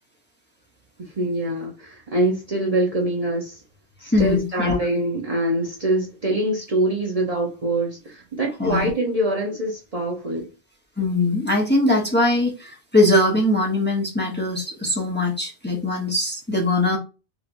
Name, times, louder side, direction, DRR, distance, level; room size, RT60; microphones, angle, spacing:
voice 1, 1.0-3.6 4.0-10.5, right 1 dB, 40° right, 0.7 m, -24 dB
voice 2, 4.1-4.7 8.6-8.9 11.0-17.0, left 1 dB, 10° left, 0.9 m, -21 dB
3.3 x 2.9 x 2.5 m
omnidirectional pair, 1.1 m